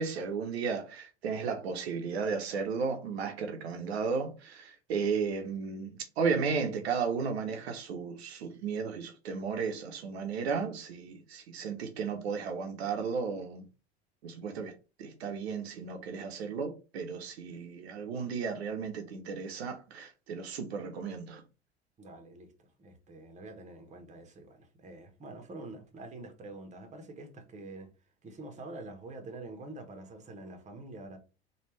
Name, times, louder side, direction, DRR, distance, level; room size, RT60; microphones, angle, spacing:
voice 1, 0.0-13.6 14.2-21.4, right 5 dB, 70° right, 0.7 m, -34 dB
voice 2, 22.0-22.5 22.8-27.9 28.2-31.2, right 2 dB, 20° right, 0.9 m, -46 dB
3.2 x 2.3 x 3.1 m
figure-of-eight pair, 75°, 33 cm